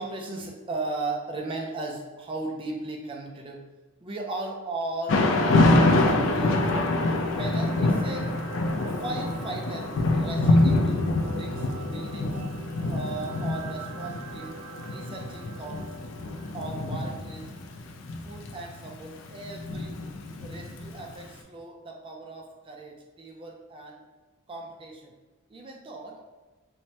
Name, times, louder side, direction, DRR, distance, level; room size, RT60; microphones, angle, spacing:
voice 1, 0.0-3.6 4.0-5.2 5.8-6.7 7.3-8.3 8.8-12.4 12.9-15.9 16.5-17.5 18.2-20.0 20.4-24.0 24.5-25.1 25.5-26.2, right 2 dB, 25° right, 0 dB, 0.4 m, -37 dB
Thunder / Rain, 5.1-21.1, left 2 dB, 60° left, 0.3 m, -25 dB
sound 1, 6.5-18.8 19.2-19.3, right 3 dB, 90° right, 0.4 m, -44 dB
3.1 x 2.1 x 2.8 m, 1.2 s
head